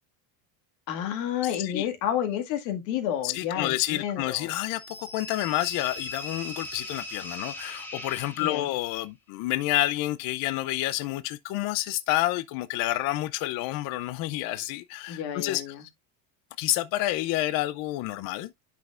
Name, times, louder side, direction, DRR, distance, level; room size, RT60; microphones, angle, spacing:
voice 1, 0.9-4.5 8.4-8.7 15.1-15.8, left 10 dB, 80° left, 2.1 m, -30 dB
voice 2, 3.2-15.9 16.6-18.5, left 16 dB, 45° left, 0.5 m, -29 dB
sound 1, 4.7-8.9, left 2 dB, 5° left, 1.8 m, -39 dB
10.5 x 5.8 x 2.4 m
supercardioid pair, 140°, 49 cm